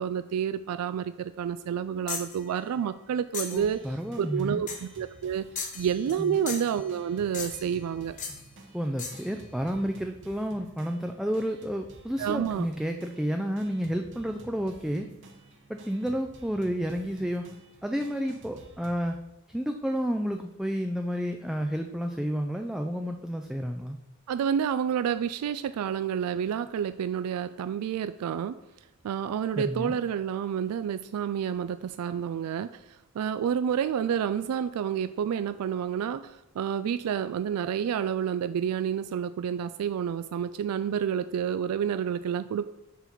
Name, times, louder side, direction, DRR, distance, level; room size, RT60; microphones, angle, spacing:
voice 1, 0.0-3.8 4.2-5.4 5.7-8.2 12.2-12.7 24.3-28.6 29.0-42.7, right 8 dB, 85° right, 12 dB, 0.3 m, -29 dB
sound 1, 2.1-2.4 3.3-3.7 4.7-4.9 5.5-6.2 6.5-6.8 7.3-7.7 8.2-8.4 9.0-9.3, left 5 dB, 35° left, 1.3 m, -36 dB
voice 2, 3.5-4.6 6.2-6.4 8.7-15.1 15.7-17.4 17.8-19.2 19.5-24.0 29.5-30.0, equal, ahead, 4 dB, 0.3 m, -31 dB
sound 2, 3.6-19.1, right 2 dB, 55° right, 1.1 m, -52 dB
7.0 x 4.0 x 5.9 m, 0.95 s
head